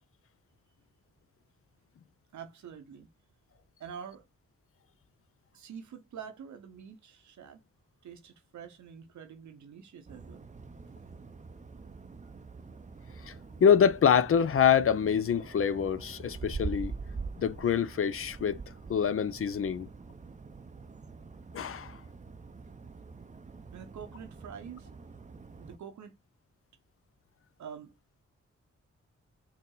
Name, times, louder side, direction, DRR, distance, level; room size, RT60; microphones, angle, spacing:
voice 1, 2.3-3.1 3.8-4.2 5.5-7.6 8.0-10.4 23.7-24.9 25.6-26.1 27.6-27.9, right 7 dB, 75° right, 0.8 m, -46 dB
sound 1, 10.1-25.8, right 4 dB, 25° right, 0.5 m, -44 dB
voice 2, 13.6-16.9 17.4-18.6 18.9-19.9 21.5-22.0, left 7 dB, 50° left, 0.5 m, -25 dB
4.2 x 2.1 x 3.8 m
supercardioid pair, 40°, 29 cm